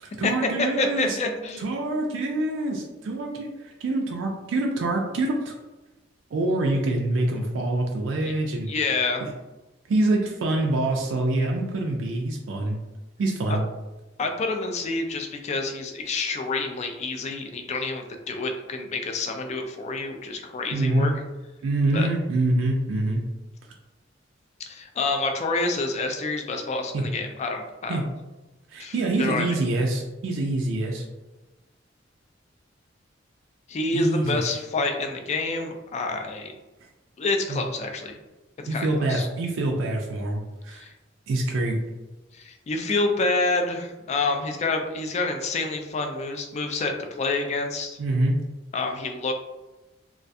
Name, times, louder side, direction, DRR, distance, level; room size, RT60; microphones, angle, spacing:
voice 1, 0.0-1.2 1.6-5.5 6.3-8.7 9.2-9.3 9.9-12.8 13.2-13.6 20.7-21.1 21.6-23.2 26.9-27.0 27.9-28.0 28.7-31.0 33.9-34.4 37.5-37.6 38.7-40.9 41.3-41.8 48.0-48.4, right 2 dB, 85° right, 0 dB, 0.4 m, -25 dB
voice 2, 0.6-1.6 8.2-8.3 8.7-9.2 13.5-13.6 14.2-21.1 21.9-22.1 24.7-28.0 28.8-29.5 33.7-36.5 37.2-38.2 38.6-39.3 40.7-40.9 42.3-48.0 48.7-49.3, left 3 dB, 35° left, 4 dB, 0.3 m, -28 dB
2.3 x 2.2 x 2.6 m, 1.1 s
head